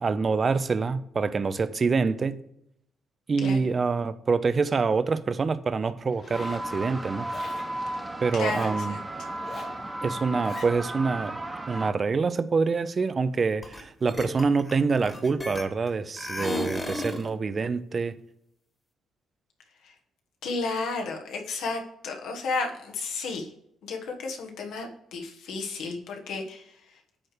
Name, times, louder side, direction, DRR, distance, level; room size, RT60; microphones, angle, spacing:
voice 1, 0.0-2.4 3.3-7.3 8.2-9.0 10.0-11.4 11.7-18.2, right 4 dB, 40° right, 0.5 m, -26 dB
Zipper (clothing), 6.1-6.6 7.3-7.7 8.3-8.8 9.3-9.8 10.3-10.7, left 3 dB, 50° left, 1.5 m, -44 dB
sound 1, 6.3-11.9, right 1 dB, 20° right, 0.9 m, -34 dB
voice 2, 8.3-9.0 19.8-19.9 20.4-23.5 23.8-26.7, left 3 dB, 80° left, 1.3 m, -32 dB
sound 2, 13.6-13.8 14.1-15.9 16.2-17.3, left 2 dB, 15° left, 1.4 m, -33 dB
8.7 x 3.3 x 6.6 m
cardioid pair, 90°, 0 cm